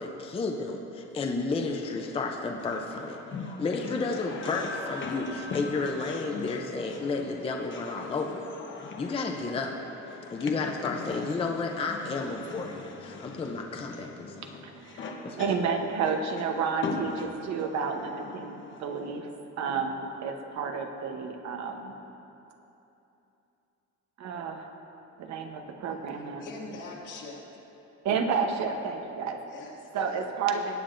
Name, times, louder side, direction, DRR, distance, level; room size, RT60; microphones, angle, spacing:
voice 1, 0.0-3.2 3.6-8.6 9.0-9.8 10.3-14.5 15.2-15.5, left 3 dB, 20° left, 2 dB, 0.5 m, -32 dB
sound 1, 1.6-19.2, left 4 dB, 40° left, 0.9 m, -40 dB
voice 2, 14.4-15.0 15.4-19.3 19.6-21.9 24.2-24.7 25.2-26.5 28.0-29.4 29.9-30.8, right 5 dB, 65° right, 5 dB, 0.9 m, -31 dB
voice 3, 26.1-27.4 29.5-30.3, left 3 dB, 75° left, -3 dB, 2.1 m, -43 dB
19.0 x 8.6 x 2.6 m, 2.9 s
cardioid pair, 165°, 30 cm